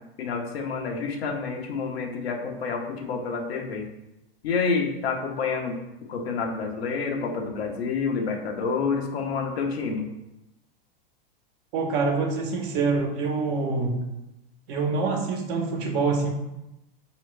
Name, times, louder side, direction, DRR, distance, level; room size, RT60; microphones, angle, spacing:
voice 1, 0.2-3.9 4.4-5.8 6.1-10.1, left 5 dB, 85° left, 2 dB, 1.0 m, -28 dB
voice 2, 11.7-14.0 14.7-16.3, right 4 dB, 55° right, 2 dB, 1.0 m, -25 dB
4.9 x 3.0 x 3.3 m, 0.93 s
supercardioid pair, 130°, 30 cm